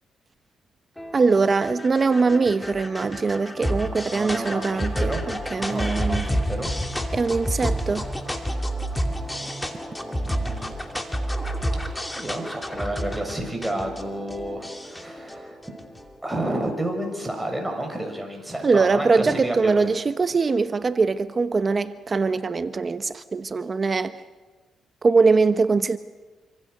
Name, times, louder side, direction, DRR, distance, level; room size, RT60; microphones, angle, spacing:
sound 1, 1.0-16.5, equal, 10° left, 2.7 m, -30 dB
voice 1, 1.1-5.1 5.5-6.3 7.1-8.1 18.6-24.2 25.0-26.0, right 4 dB, 35° right, 0.9 m, -22 dB
voice 2, 4.0-5.2 5.6-6.7 10.0-10.7 11.9-15.6 16.2-19.9, right 1 dB, 5° right, 6.4 m, -31 dB
27.0 x 25.5 x 6.7 m
cardioid pair, 90°, 0 cm